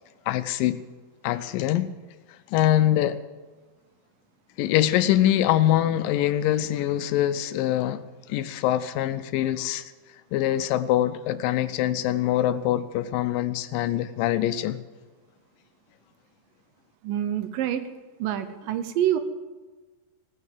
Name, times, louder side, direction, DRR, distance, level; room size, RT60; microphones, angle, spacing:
voice 1, 0.3-0.8 1.2-1.9 2.5-3.2 4.6-8.0 8.3-9.9 10.3-14.8, left 12 dB, 80° left, 2.2 m, -24 dB
voice 2, 17.0-17.9 18.2-19.2, right 11 dB, 75° right, 2.5 m, -26 dB
17.5 x 9.7 x 7.5 m
omnidirectional pair, 4.1 m